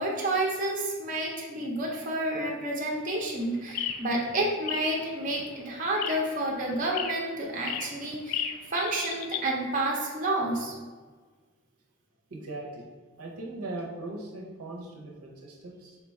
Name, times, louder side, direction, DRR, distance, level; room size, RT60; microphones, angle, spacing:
voice 1, 0.0-10.7, right 1 dB, 35° right, -2 dB, 0.6 m, -30 dB
sound 1, 2.9-9.5, left 9 dB, 90° left, 0.3 m, -36 dB
voice 2, 12.3-12.9 13.2-16.0, right 2 dB, 80° right, 0 dB, 0.7 m, -39 dB
3.7 x 2.3 x 4.0 m, 1.5 s
head